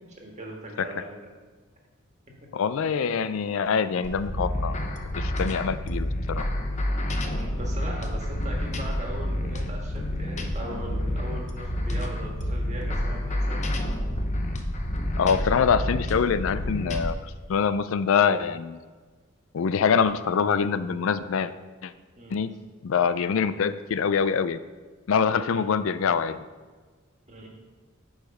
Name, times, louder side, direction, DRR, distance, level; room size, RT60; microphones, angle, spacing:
voice 1, 0.2-1.3 7.2-13.6 22.2-22.4 25.3-25.6 27.3-27.5, right 1 dB, 35° right, 0 dB, 1.7 m, -40 dB
voice 2, 2.5-4.8 5.2-6.4 15.2-18.8 19.5-21.5 21.8-21.9 22.3-22.5 22.8-24.6 25.1-26.4, left 6 dB, 70° left, 13 dB, 0.4 m, -24 dB
sound 1, 4.0-17.1, left 1 dB, 35° left, 0.8 m, -29 dB
8.9 x 4.9 x 5.3 m, 1.4 s
head